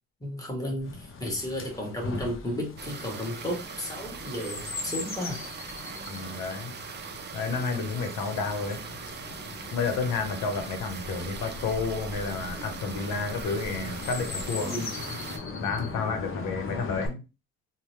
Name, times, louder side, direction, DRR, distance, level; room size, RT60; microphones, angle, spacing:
voice 1, 0.2-5.4 7.5-7.8 14.6-14.9, left 1 dB, 10° left, 1.3 m, -33 dB
Chirp tweet, 0.8-17.1, left 4 dB, 40° left, 0.7 m, -40 dB
sound 1, 2.8-15.4, right 5 dB, 35° right, 0.5 m, -40 dB
voice 2, 6.1-6.7 7.3-8.8 9.7-14.8 15.6-17.2, left 4 dB, 75° left, 0.8 m, -31 dB
2.7 x 2.1 x 3.1 m
supercardioid pair, 65°, 33 cm